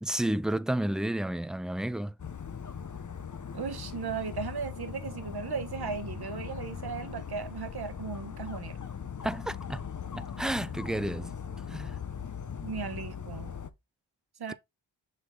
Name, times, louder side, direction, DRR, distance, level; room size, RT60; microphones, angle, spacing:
voice 1, 0.0-2.1 9.2-11.4 11.7-12.0, right 1 dB, ahead, 0.3 m, -31 dB
Dog, 2.2-13.7, left 7 dB, 40° left, 0.8 m, -40 dB
voice 2, 3.5-8.8 12.6-13.5 14.4-14.5, right 5 dB, 55° right, 1.1 m, -36 dB
6.7 x 3.8 x 3.7 m
cardioid pair, 50°, 45 cm